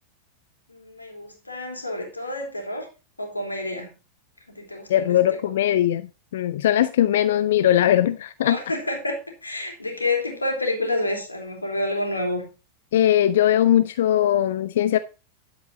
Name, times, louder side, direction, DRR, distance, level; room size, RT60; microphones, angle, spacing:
voice 1, 0.7-2.9 3.2-3.9 4.5-5.1 8.4-12.5, left 2 dB, 80° left, 3.2 m, -29 dB
voice 2, 4.9-8.6 12.9-15.0, left 11 dB, 60° left, 0.6 m, -20 dB
11.5 x 7.9 x 4.1 m
figure-of-eight pair, 90°, 0 cm